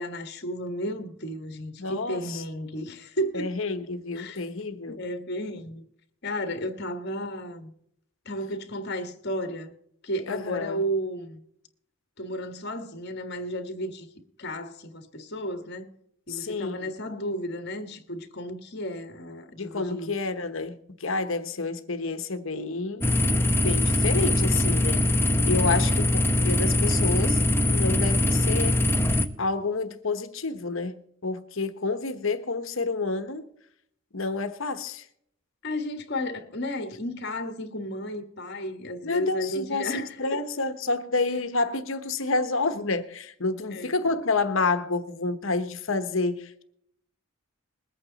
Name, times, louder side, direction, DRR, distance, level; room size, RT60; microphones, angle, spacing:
voice 1, 0.0-3.5 4.1-4.4 4.9-5.8 6.2-7.7 8.2-9.7 10.0-11.4 12.2-14.1 14.4-15.9 16.3-20.1 25.6-26.0 35.6-40.4 43.7-43.9, equal, 50° left, 1.6 m, -33 dB
voice 2, 1.8-2.4 3.3-5.0 10.3-10.8 16.3-16.9 19.6-23.1 23.6-25.0 25.4-26.0 26.4-27.4 27.7-28.8 29.4-33.5 34.1-35.1 39.0-46.5, left 3 dB, 65° left, 1.1 m, -29 dB
sound 1, 23.0-29.3, left 1 dB, 10° left, 0.7 m, -22 dB
21.0 x 8.8 x 4.0 m
head